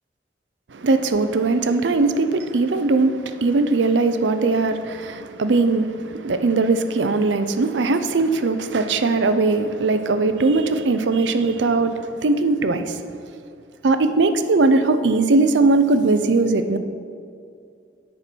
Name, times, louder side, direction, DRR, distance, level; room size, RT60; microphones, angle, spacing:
voice 1, 0.7-13.0 13.8-16.8, right 3 dB, 90° right, 0.6 m, -20 dB
9.8 x 4.4 x 6.1 m
head